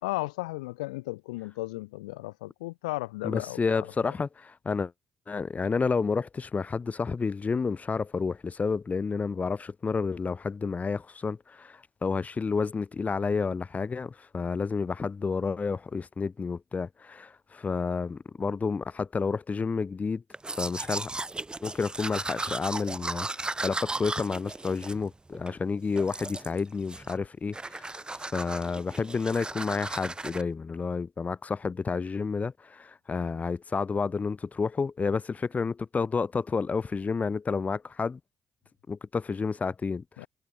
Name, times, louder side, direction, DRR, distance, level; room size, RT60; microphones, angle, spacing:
voice 1, 0.0-3.6 4.1-4.2 40.2-40.3, left 21 dB, 90° left, 2.0 m, -35 dB
voice 2, 3.2-4.9 5.3-20.2 20.6-21.1 21.6-38.2 38.9-40.3, left 5 dB, 40° left, 4.2 m, -30 dB
Domestic sounds home sounds, 20.3-25.6 26.0-26.6 26.9-27.3 27.5-30.4, right 2 dB, 25° right, 4.6 m, -36 dB
hypercardioid pair, 45°, 4 cm